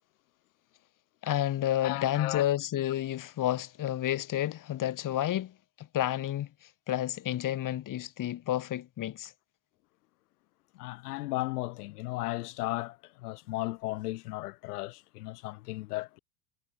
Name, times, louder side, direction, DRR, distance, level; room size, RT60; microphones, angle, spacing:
voice 1, 1.2-9.3, left 12 dB, 45° left, 2.6 m, -30 dB
voice 2, 1.8-2.4 10.7-16.2, left 20 dB, 80° left, 1.4 m, -35 dB
hypercardioid pair, 90°, 45 cm